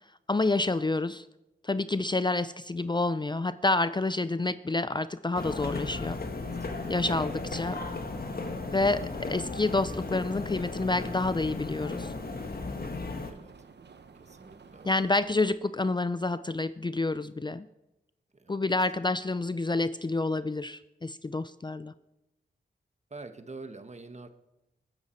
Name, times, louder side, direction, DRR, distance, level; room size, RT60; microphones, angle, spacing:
voice 1, 0.3-1.3 1.6-6.2 6.9-7.8 8.7-12.1 14.8-17.7 18.5-21.9, left 2 dB, 25° left, 14 dB, 0.5 m, -28 dB
sound 1, 5.3-13.3, left 3 dB, 55° left, 1.7 m, -36 dB
sound 2, 6.4-15.5, right 5 dB, 65° right, 1.0 m, -51 dB
voice 2, 6.6-7.2 13.3-13.5 14.2-15.0 18.3-18.6 23.1-24.3, right 3 dB, 35° right, 9 dB, 1.3 m, -46 dB
20.5 x 9.5 x 4.5 m, 0.96 s
cardioid pair, 50°, 19 cm